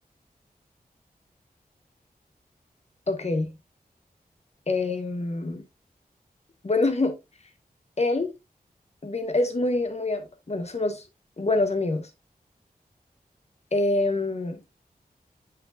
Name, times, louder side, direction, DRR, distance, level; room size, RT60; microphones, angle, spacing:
voice 1, 3.1-3.5 4.7-5.6 6.6-7.2 8.0-8.3 9.0-11.0 11.4-12.1 13.7-14.8, left 2 dB, 45° left, 1.4 m, -25 dB
7.8 x 6.0 x 2.5 m
wide cardioid pair, 75°, 16 cm